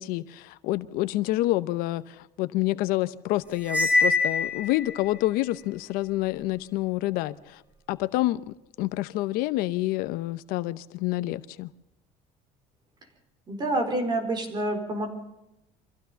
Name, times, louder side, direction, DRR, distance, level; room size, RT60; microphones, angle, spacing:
voice 1, 0.0-7.6 7.9-11.7, left 17 dB, 70° left, 14 dB, 0.8 m, -28 dB
Cymbal, 3.6-5.1, left 3 dB, 10° right, 1.9 m, -24 dB
voice 2, 13.5-15.1, right 1 dB, 25° right, 5 dB, 4.5 m, -27 dB
25.0 x 15.5 x 7.0 m, 0.90 s
cardioid pair, 160°, 16 cm